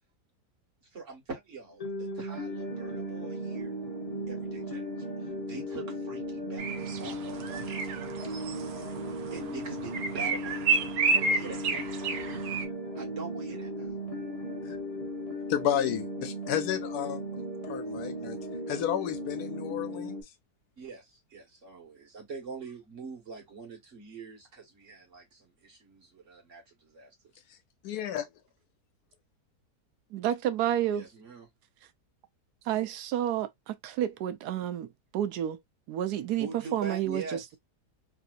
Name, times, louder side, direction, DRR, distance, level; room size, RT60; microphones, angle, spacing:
voice 1, 0.9-3.7 4.3-4.8 5.2-8.4 9.3-11.8 12.9-13.9 20.8-27.1 30.9-31.5 36.4-37.4, right 4 dB, 50° right, 1.7 m, -44 dB
sound 1, 1.8-20.2, equal, 30° left, 0.8 m, -36 dB
sound 2, 6.6-12.7, right 4 dB, 70° right, 1.1 m, -31 dB
voice 2, 15.5-18.4 18.7-20.1 27.5-27.6 27.8-28.3, left 10 dB, 80° left, 1.1 m, -32 dB
voice 3, 30.1-31.0 32.7-34.9 35.1-35.6 35.9-37.6, right 11 dB, 85° right, 1.1 m, -30 dB
3.3 x 2.7 x 2.4 m
omnidirectional pair, 1.7 m